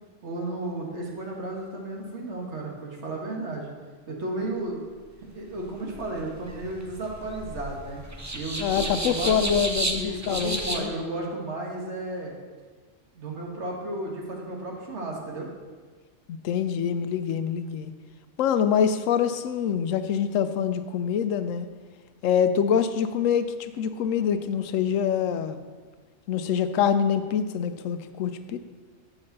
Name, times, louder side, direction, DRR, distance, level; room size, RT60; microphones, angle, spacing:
voice 1, 0.2-3.7 4.1-4.8 5.3-8.0 8.3-9.7 10.0-12.3 13.1-15.5, right 2 dB, 60° right, -1 dB, 1.7 m, -33 dB
sound 1, 5.5-10.8, right 2 dB, 25° right, 0.4 m, -32 dB
voice 2, 8.6-10.9 16.3-17.9 18.4-21.7 22.2-25.6 26.3-28.6, left 8 dB, 85° left, 11 dB, 1.0 m, -25 dB
7.3 x 5.1 x 6.5 m, 1.5 s
omnidirectional pair, 1.3 m